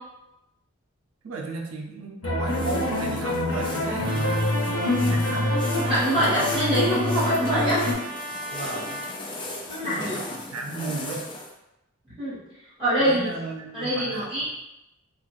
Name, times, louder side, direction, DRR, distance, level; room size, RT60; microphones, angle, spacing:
voice 1, 1.2-5.5 6.2-6.5 8.5-9.0 9.8-11.3 13.0-14.3, right 3 dB, 80° right, 1 dB, 0.4 m, -35 dB
sound 1, 2.2-7.9, left 1 dB, 80° left, 0.7 m, -25 dB
sound 2, 2.5-11.5, left 2 dB, 25° left, 0.3 m, -38 dB
Trumpet, 4.0-9.1, right 2 dB, 25° right, 0.6 m, -37 dB
voice 2, 5.9-7.8 9.7-10.2 12.2-12.4 12.8-13.3 13.7-14.4, equal, 5° right, -11 dB, 1.0 m, -24 dB
2.5 x 2.3 x 3.0 m, 0.91 s
head